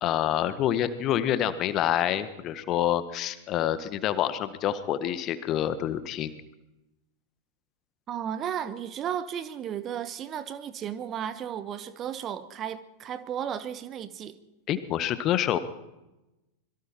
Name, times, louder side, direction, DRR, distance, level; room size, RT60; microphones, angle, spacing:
voice 1, 0.0-6.3 14.7-15.6, left 11 dB, 35° left, 1.5 m, -27 dB
voice 2, 8.1-14.4, right 9 dB, 30° right, 1.2 m, -34 dB
25.5 x 22.5 x 4.5 m
figure-of-eight pair, 90°, 0 cm